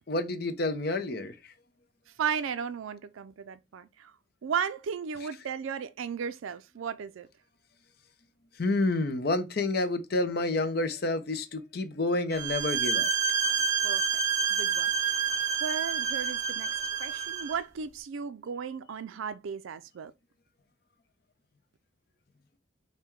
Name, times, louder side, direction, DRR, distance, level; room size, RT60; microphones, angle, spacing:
voice 1, 0.1-1.5 8.5-13.1, left 2 dB, 50° left, 0.6 m, -29 dB
voice 2, 2.2-4.1 4.4-7.3 13.8-14.0 14.5-14.9 15.6-16.7 17.0-20.1, right 7 dB, 80° right, 0.4 m, -35 dB
sound 1, 12.3-17.6, right 7 dB, 15° right, 1.4 m, -28 dB
5.5 x 2.1 x 4.5 m
head